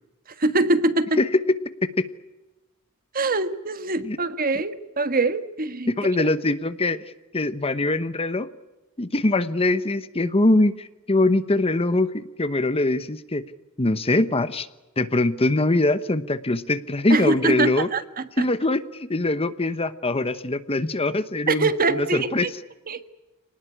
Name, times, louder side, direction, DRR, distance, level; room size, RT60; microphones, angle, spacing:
voice 1, 0.4-1.2 3.1-5.9 17.1-18.0 18.4-18.5 21.5-22.5 22.9-23.1, right 2 dB, 40° right, 11 dB, 1.5 m, -23 dB
voice 2, 1.2-1.6 2.0-2.1 4.0-4.2 4.5-4.6 5.9-7.0 7.3-8.5 9.0-13.4 13.8-14.7 15.0-17.9 18.4-22.5, left 2 dB, 25° left, 13 dB, 1.0 m, -23 dB
26.5 x 19.5 x 9.9 m, 1.1 s
head